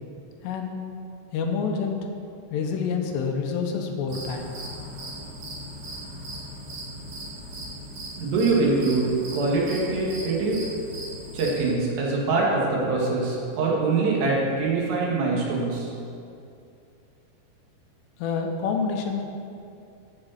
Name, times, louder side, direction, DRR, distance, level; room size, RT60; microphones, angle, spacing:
voice 1, 0.4-0.8 1.3-2.0 2.5-4.5 18.2-19.2, left 5 dB, 80° left, 3 dB, 3.0 m, -27 dB
sound 1, 4.1-11.7, right 1 dB, 45° right, 3.6 m, -38 dB
voice 2, 8.2-10.6 11.3-15.9, right 3 dB, 75° right, -3 dB, 4.0 m, -24 dB
14.5 x 5.3 x 6.4 m, 2.5 s
omnidirectional pair, 5.0 m